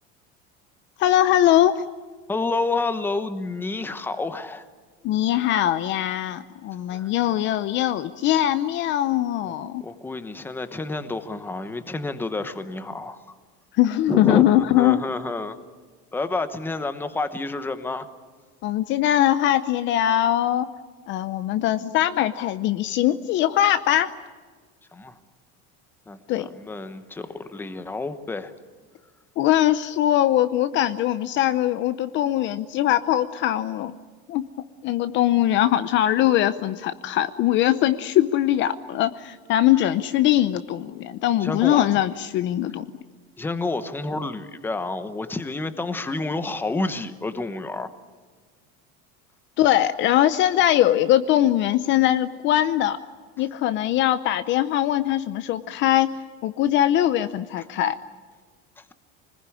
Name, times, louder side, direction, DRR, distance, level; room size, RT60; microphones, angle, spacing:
voice 1, 1.0-1.8 5.0-9.8 13.8-15.0 18.6-20.7 21.1-24.1 26.3-26.5 29.4-33.9 34.3-34.5 34.8-42.9 49.6-53.0 53.4-56.1 56.4-58.0, left 12 dB, 40° left, 12 dB, 0.7 m, -21 dB
voice 2, 2.3-4.7 6.9-7.1 9.4-9.5 9.8-13.2 14.1-15.6 16.1-18.1 24.9-25.2 26.1-28.5 41.4-41.9 43.4-47.9, left 3 dB, 5° left, 10 dB, 1.0 m, -29 dB
25.5 x 20.5 x 9.9 m, 1.5 s
cardioid pair, 170°, 29 cm